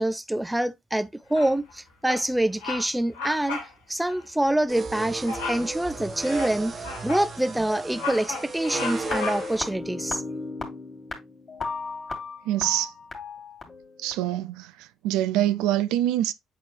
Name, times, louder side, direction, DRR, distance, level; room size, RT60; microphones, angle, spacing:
voice 1, 0.0-3.6 3.9-10.2, right 1 dB, 10° right, 0.6 m, -26 dB
Bird vocalization bird call bird song, 1.3-1.7 2.1-2.3 2.6-2.9 3.1-3.7 4.1-4.2 5.3-5.7 6.2-7.3 7.7-9.7, left 4 dB, 75° left, 1.4 m, -34 dB
sound 1, 4.7-9.7, right 3 dB, 40° right, 1.1 m, -35 dB
sound 2, 9.0-14.1, left 3 dB, 35° left, 2.7 m, -35 dB
voice 2, 12.5-12.9 14.0-14.7 15.0-16.3, right 13 dB, 65° right, 0.4 m, -24 dB
8.0 x 4.4 x 3.0 m
figure-of-eight pair, 45°, 0 cm